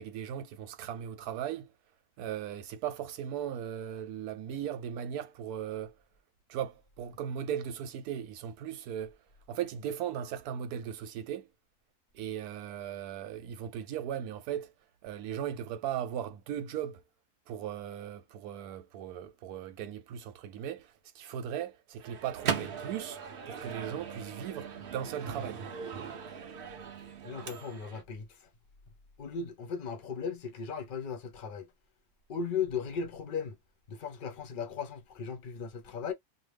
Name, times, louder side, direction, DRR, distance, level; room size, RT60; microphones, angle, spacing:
voice 1, 0.0-1.7 2.2-5.9 6.5-9.2 9.5-11.5 12.1-14.7 15.0-17.0 17.5-23.2 23.5-25.6, right 9 dB, 90° right, 1.1 m, -37 dB
Microwave oven, 22.0-28.0, right 7 dB, 55° right, 0.6 m, -39 dB
voice 2, 27.2-28.5 29.2-31.7 32.3-33.6 33.9-36.1, left 6 dB, 45° left, 0.7 m, -37 dB
2.8 x 2.1 x 3.3 m
omnidirectional pair, 1.6 m